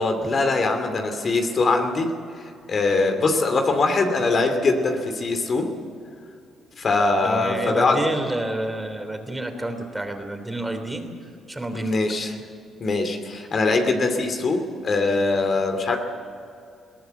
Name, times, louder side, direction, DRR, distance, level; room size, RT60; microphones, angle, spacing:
voice 1, 0.0-5.7 6.8-8.0 11.7-12.4 12.8-16.0, left 3 dB, 45° left, 5 dB, 2.5 m, -22 dB
voice 2, 7.2-11.9, right 1 dB, 10° right, 6 dB, 3.3 m, -29 dB
21.5 x 17.5 x 8.0 m, 2.4 s
cardioid pair, 90°, 0 cm